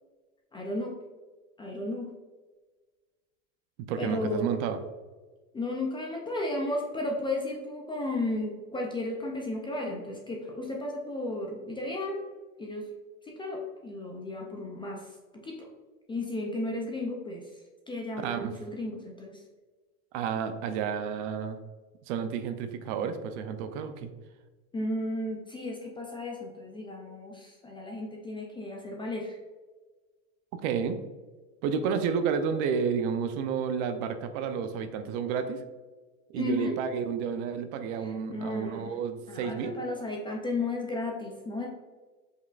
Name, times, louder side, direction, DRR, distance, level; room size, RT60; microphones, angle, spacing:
voice 1, 0.5-0.9 1.6-2.1 4.0-4.5 5.5-12.2 12.6-12.8 13.3-15.1 15.4-15.6 16.1-17.4 17.9-19.4 24.7-29.4 36.4-36.7 38.0-38.9 39.3-41.7, left 2 dB, 15° left, 0 dB, 0.4 m, -34 dB
voice 2, 3.9-4.8 18.2-18.5 20.1-21.6 22.1-24.1 30.6-31.0 31.6-35.6 36.3-39.8, right 6 dB, 60° right, 8 dB, 0.6 m, -31 dB
5.3 x 3.6 x 2.4 m, 1.3 s
supercardioid pair, 130°, 41 cm